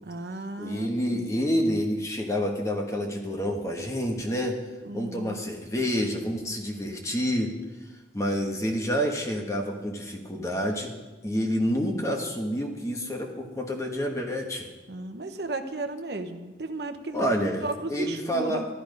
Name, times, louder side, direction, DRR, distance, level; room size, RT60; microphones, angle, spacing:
voice 1, 0.1-1.3 4.8-5.5 14.9-18.7, right 2 dB, 70° right, 7 dB, 1.0 m, -35 dB
voice 2, 0.6-4.7 4.9-7.6 8.1-11.0 11.2-14.7 17.1-18.7, equal, 15° left, 2 dB, 1.4 m, -28 dB
13.0 x 13.0 x 5.2 m, 1.2 s
head